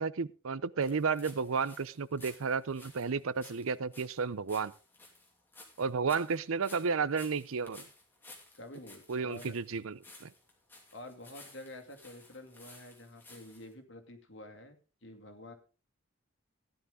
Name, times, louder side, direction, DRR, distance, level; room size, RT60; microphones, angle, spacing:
voice 1, 0.0-4.7 5.8-7.8 9.1-10.3, right 5 dB, 80° right, 0.6 m, -32 dB
sound 1, 0.8-13.7, left 2 dB, 10° left, 2.8 m, -55 dB
voice 2, 8.6-9.5 10.9-14.8 15.0-15.5, left 1 dB, 60° left, 2.3 m, -49 dB
15.0 x 10.5 x 3.6 m
head